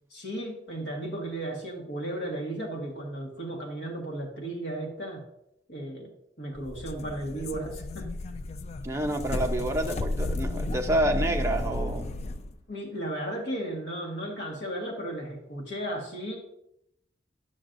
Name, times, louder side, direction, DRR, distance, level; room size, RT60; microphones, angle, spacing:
voice 1, 0.1-5.2 5.7-6.1 6.4-8.1 9.0-9.2 12.7-16.4, right 1 dB, 65° left, -1 dB, 1.5 m, -35 dB
sound 1, 6.5-12.5, left 1 dB, 35° left, 0.3 m, -33 dB
voice 2, 8.8-12.1, right 1 dB, 15° right, 3 dB, 0.6 m, -28 dB
10.0 x 6.1 x 2.6 m, 0.79 s
head